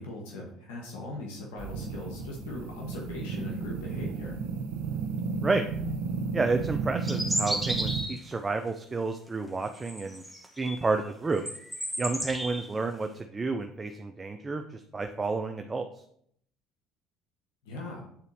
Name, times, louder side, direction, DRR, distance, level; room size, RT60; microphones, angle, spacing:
voice 1, 0.0-4.4 17.6-18.0, left 2 dB, 85° left, -1 dB, 1.3 m, -40 dB
sound 1, 1.6-8.0, right 5 dB, 85° right, 0.7 m, -33 dB
voice 2, 6.3-10.2 10.6-11.4 12.0-15.8, right 3 dB, 25° right, 6 dB, 0.5 m, -30 dB
sound 2, 7.1-8.3 9.7-10.9 11.3-12.7, right 1 dB, ahead, 1.1 m, -33 dB
8.8 x 4.1 x 2.8 m, 0.68 s
supercardioid pair, 80°, 0 cm